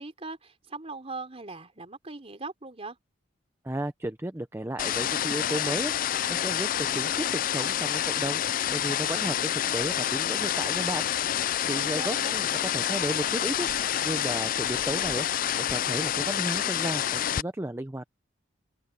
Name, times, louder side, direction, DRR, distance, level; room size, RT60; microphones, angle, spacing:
voice 1, 0.0-3.0 11.9-12.3, right 3 dB, 30° right, 3.4 m, -40 dB
voice 2, 3.6-5.9 6.3-8.4 8.7-11.1 11.7-13.7 14.0-15.3 15.6-18.1, right 1 dB, 15° right, 0.7 m, -33 dB
sound 1, 4.8-17.4, left 10 dB, 45° left, 0.4 m, -28 dB
open air
head